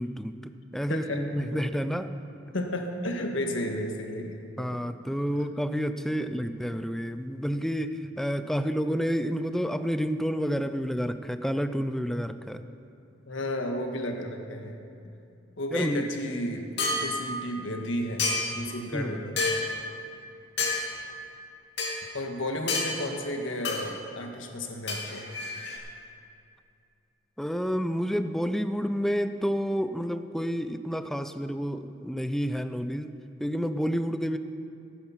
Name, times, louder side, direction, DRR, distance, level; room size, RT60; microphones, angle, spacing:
voice 1, 0.0-2.1 4.6-12.6 15.7-16.1 18.9-19.1 27.4-34.4, equal, ahead, 10 dB, 0.4 m, -29 dB
voice 2, 0.9-1.2 1.5-1.6 2.5-4.8 6.2-6.3 13.3-14.7 15.6-18.2 18.5-19.5 22.1-25.3, left 1 dB, 85° left, 3 dB, 1.5 m, -33 dB
sound 1, 16.8-17.1 18.2-18.6 19.4-19.7 20.6-20.8 21.8-21.9 22.7-22.9 23.6-23.8 24.9-25.8, left 3 dB, 65° left, 2.6 m, -28 dB
16.5 x 9.9 x 5.8 m, 2.6 s
head